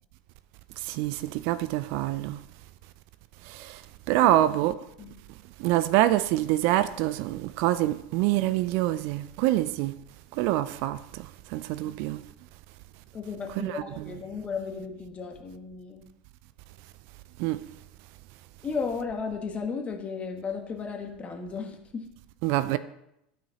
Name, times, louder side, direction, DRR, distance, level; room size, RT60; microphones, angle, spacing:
voice 1, 0.9-2.4 3.5-3.8 4.1-4.7 5.6-9.9 10.4-11.0 11.5-12.2 13.6-14.1 17.4-17.6 22.4-22.8, right 15 dB, 55° right, 0.3 m, -25 dB
voice 2, 13.1-16.1 18.6-22.1, left 5 dB, 25° left, 1.4 m, -34 dB
12.5 x 5.7 x 3.0 m
hypercardioid pair, 90°, 5 cm